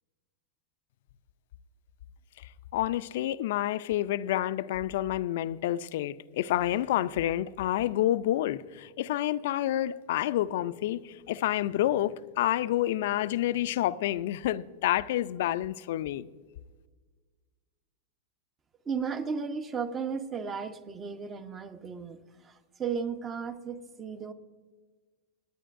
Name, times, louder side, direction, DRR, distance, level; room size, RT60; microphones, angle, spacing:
voice 1, 2.7-16.3, left 13 dB, 70° left, 0.4 m, -29 dB
voice 2, 18.9-24.3, right 6 dB, 25° right, 1.0 m, -35 dB
24.5 x 9.1 x 2.6 m
hypercardioid pair, 110°, 0 cm